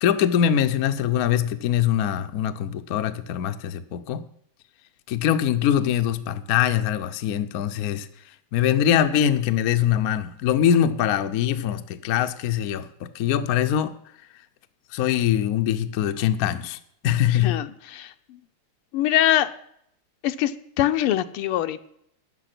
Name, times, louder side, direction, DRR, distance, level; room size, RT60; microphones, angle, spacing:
voice 1, 0.0-4.2 5.1-8.1 8.5-13.9 14.9-17.6, left 10 dB, 65° left, 10 dB, 0.9 m, -23 dB
voice 2, 17.4-18.1 18.9-19.5 20.2-20.5 20.8-21.9, left 13 dB, 85° left, 11 dB, 1.6 m, -23 dB
13.5 x 9.2 x 6.0 m, 0.70 s
omnidirectional pair, 2.4 m